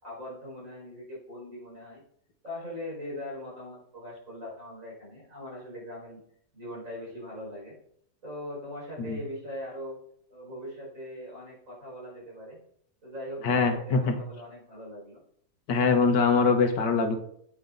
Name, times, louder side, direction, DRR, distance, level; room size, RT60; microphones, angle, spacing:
voice 1, 0.0-2.0 2.4-6.2 6.5-7.7 8.2-10.0 10.3-12.6 13.0-15.2, left 1 dB, 50° right, -4 dB, 5.7 m, -40 dB
voice 2, 13.4-14.2 15.7-17.2, left 4 dB, 80° left, 6 dB, 1.9 m, -23 dB
11.0 x 8.6 x 4.0 m, 0.68 s
omnidirectional pair, 1.8 m